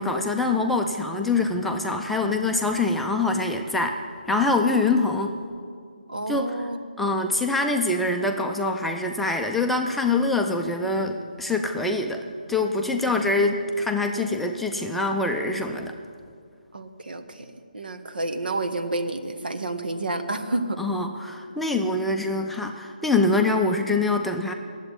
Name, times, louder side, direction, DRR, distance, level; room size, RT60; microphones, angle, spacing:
voice 1, 0.0-4.0 4.3-5.4 6.3-6.5 7.0-15.9 20.8-24.5, left 3 dB, ahead, 2 dB, 0.4 m, -24 dB
voice 2, 6.1-6.8 12.9-13.0 16.7-17.5 17.7-20.8, right 2 dB, 80° right, 7 dB, 1.3 m, -30 dB
10.5 x 8.0 x 9.8 m, 2.2 s
figure-of-eight pair, 155°, 5 cm